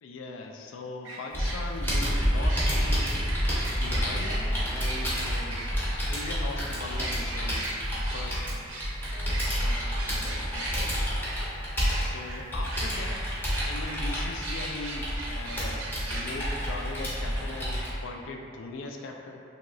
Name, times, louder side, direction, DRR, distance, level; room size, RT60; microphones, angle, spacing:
voice 1, 0.0-3.5 3.7-5.8 6.1-7.8 8.1-8.4 9.1-11.1 12.0-19.4, left 3 dB, 75° left, 2 dB, 0.3 m, -40 dB
sound 1, 1.0-6.4 7.0-10.8 11.3-11.5 11.8-12.4 12.7-13.2 13.5-14.0 14.4-16.2, right 2 dB, 85° right, 0.5 m, -38 dB
Computer keyboard, 1.3-17.9, equal, 10° left, 0.6 m, -29 dB
2.9 x 2.8 x 2.6 m, 2.6 s
head